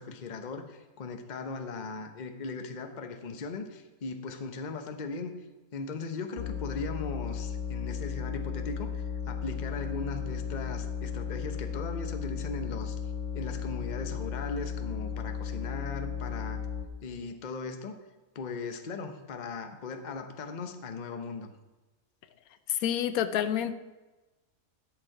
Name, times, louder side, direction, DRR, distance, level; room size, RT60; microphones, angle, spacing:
voice 1, 0.0-5.3 5.7-13.0 13.3-16.7 17.0-18.0 18.3-21.5, left 4 dB, 40° left, 7 dB, 0.8 m, -38 dB
sound 1, 6.4-16.9, left 7 dB, 55° left, 1.4 m, -35 dB
voice 2, 22.7-23.7, left 10 dB, 85° left, 11 dB, 1.1 m, -28 dB
10.5 x 7.1 x 4.8 m, 1.1 s
omnidirectional pair, 1.5 m